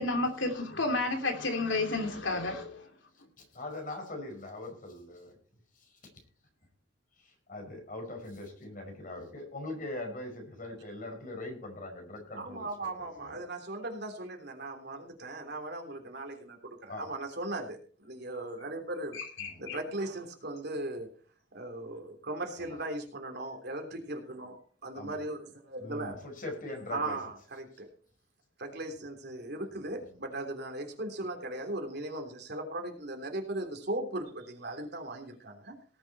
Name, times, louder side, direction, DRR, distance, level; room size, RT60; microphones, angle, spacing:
voice 1, 0.0-2.9 19.1-19.8, left 2 dB, 75° left, 4 dB, 2.9 m, -31 dB
voice 2, 3.5-5.4 5.7-6.0 7.2-12.7 13.0-13.4 16.9-17.1 19.4-19.6 22.6-22.8 24.9-25.2 25.8-27.2 30.0-30.2, left 2 dB, 45° left, 3 dB, 5.3 m, -41 dB
voice 3, 12.3-19.2 19.6-21.1 21.5-26.2 26.9-27.9 28.6-35.7, right 2 dB, 60° right, 4 dB, 3.4 m, -38 dB
18.5 x 8.1 x 4.2 m, 0.43 s
head